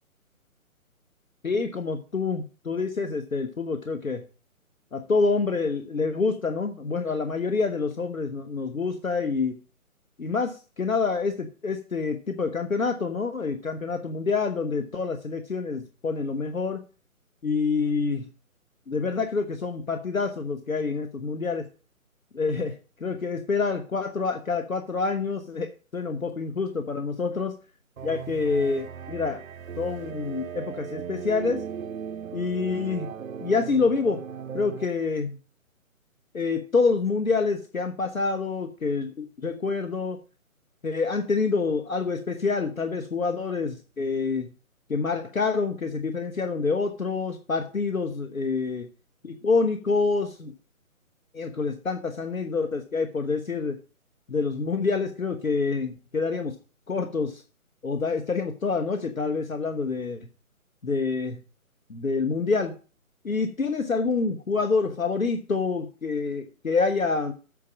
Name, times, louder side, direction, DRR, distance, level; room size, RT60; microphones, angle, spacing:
voice 1, 1.4-4.2 4.9-9.6 10.2-16.8 17.4-18.3 18.9-21.7 22.3-27.5 28.0-29.4 29.8-31.6 32.3-33.1 33.4-34.2 34.5-35.4 36.3-40.2 40.8-44.5 44.9-48.9 49.2-50.5 51.3-53.8 54.3-56.5 56.9-57.4 57.8-60.3 60.8-61.4 61.9-62.7 63.2-67.3, left 4 dB, 70° left, 7 dB, 1.2 m, -27 dB
sound 1, 28.0-34.9, right 7 dB, 70° right, 0.6 m, -37 dB
8.5 x 5.0 x 7.4 m, 0.35 s
figure-of-eight pair, 145°, 42 cm